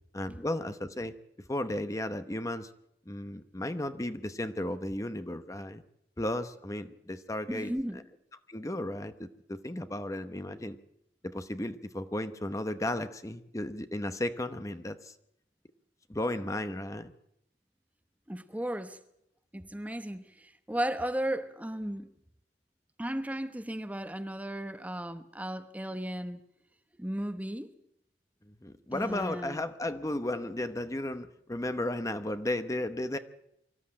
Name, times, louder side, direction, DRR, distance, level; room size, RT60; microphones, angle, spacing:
voice 1, 0.1-1.2 1.5-2.7 3.1-5.8 6.2-7.7 8.5-10.8 11.2-15.1 16.1-17.1 28.5-33.2, left 1 dB, 20° left, 0.9 m, -34 dB
voice 2, 7.5-8.0 18.3-19.0 19.5-22.1 23.0-26.4 27.0-27.7 28.9-29.6, right 1 dB, 10° right, 0.9 m, -35 dB
24.5 x 14.0 x 8.8 m
head